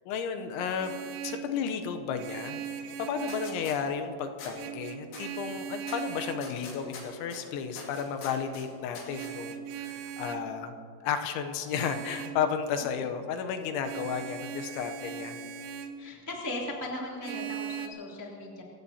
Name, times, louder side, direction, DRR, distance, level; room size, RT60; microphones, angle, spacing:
voice 1, 0.1-1.0 1.2-2.6 3.0-10.7 11.0-15.4, left 7 dB, 80° left, 7 dB, 3.1 m, -33 dB
Vehicle horn car horn honking, 0.6-1.5 2.2-3.7 4.5-6.5 9.1-10.5 11.7-12.4 13.8-16.0 17.2-17.9, right 8 dB, 85° right, 3.2 m, -39 dB
sound 1, 3.3-3.8 4.4-4.5 5.1-5.2 5.9-6.0 6.4-7.4 7.8-8.6 8.9-9.3, left 4 dB, 55° left, 3.6 m, -43 dB
voice 2, 16.0-18.6, left 1 dB, 25° right, -3 dB, 0.4 m, -37 dB
27.5 x 16.5 x 2.8 m, 2.5 s
omnidirectional pair, 5.4 m